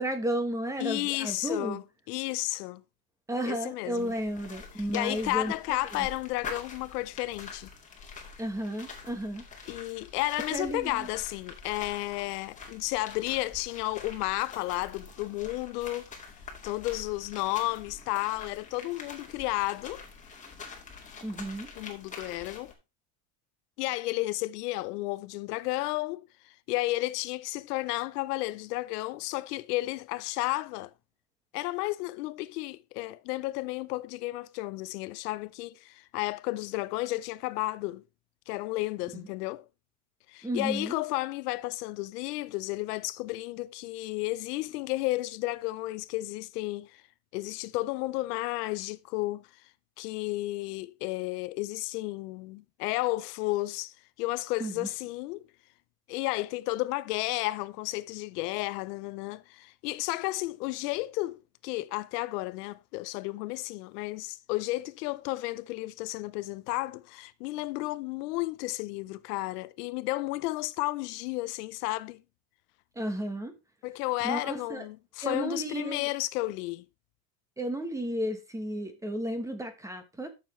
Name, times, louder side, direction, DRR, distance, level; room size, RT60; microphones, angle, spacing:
voice 1, 0.0-1.8 3.3-6.1 8.4-9.4 10.5-11.1 21.2-21.7 40.4-40.9 54.6-54.9 72.9-73.5 74.2-74.9 75.2-76.1 77.6-80.3, right 1 dB, 5° right, 1.2 m, -33 dB
voice 2, 0.8-2.8 3.4-4.1 4.9-7.7 9.7-16.1 16.6-20.0 21.8-22.7 23.8-30.9 31.5-38.0 38.5-39.7 40.3-47.0 47.3-49.5 50.0-55.5 56.1-72.2 73.8-76.9, left 19 dB, 85° left, 0.8 m, -32 dB
sound 1, 4.0-22.7, left 5 dB, 15° left, 2.1 m, -46 dB
12.0 x 6.9 x 3.2 m
cardioid pair, 155°, 45 cm